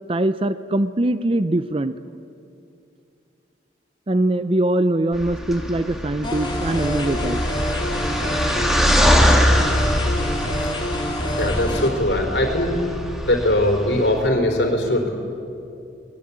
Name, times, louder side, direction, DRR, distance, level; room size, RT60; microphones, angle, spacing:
voice 1, 0.1-1.9 4.1-7.4, right 1 dB, 30° right, 12 dB, 0.5 m, -22 dB
sound 1, 5.1-14.3, equal, ahead, 2.2 m, -23 dB
sound 2, 6.2-11.9, equal, 25° left, 3.0 m, -27 dB
voice 2, 11.3-12.8 13.2-15.1, left 1 dB, 65° left, 3 dB, 4.3 m, -21 dB
24.0 x 21.0 x 8.7 m, 2.6 s
head